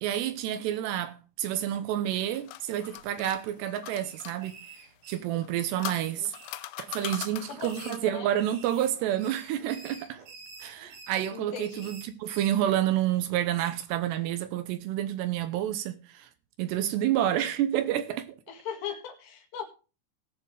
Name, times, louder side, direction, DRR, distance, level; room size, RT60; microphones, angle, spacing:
voice 1, 0.0-4.5 5.1-6.3 6.8-10.2 10.6-16.3 16.6-18.3, right 12 dB, 85° right, 2.4 m, -29 dB
sound 1, 2.1-4.4 5.3-8.2, left 16 dB, 85° left, 2.6 m, -41 dB
sound 2, 3.0-3.7 4.0-5.6 6.0-7.2 7.5-12.6, right 4 dB, 60° right, 6.2 m, -49 dB
voice 2, 7.5-8.3 11.3-11.9 18.5-19.6, left 8 dB, 60° left, 3.6 m, -39 dB
20.0 x 6.9 x 3.3 m
omnidirectional pair, 6.0 m